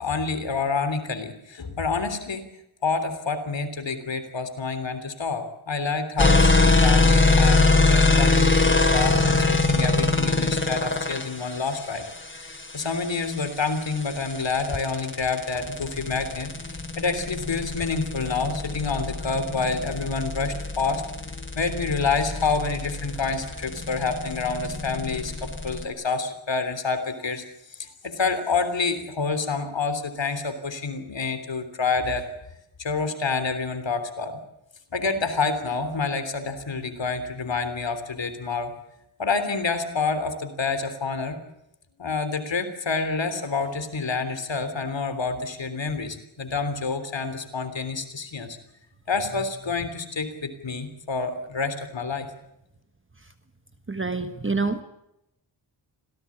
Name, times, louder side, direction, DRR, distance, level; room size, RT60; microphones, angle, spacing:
voice 1, 0.0-2.4 2.8-12.0 12.3-21.0 21.5-27.4 27.7-32.3 32.8-34.4 34.9-38.7 39.2-41.4 42.0-48.6 49.1-52.3, left 4 dB, 65° left, 10 dB, 3.3 m, -28 dB
sound 1, 6.2-25.8, left 3 dB, 25° left, 2.8 m, -23 dB
voice 2, 53.9-54.8, right 3 dB, 25° right, 8 dB, 1.4 m, -26 dB
26.0 x 17.5 x 8.6 m, 0.85 s
wide cardioid pair, 110°, 47 cm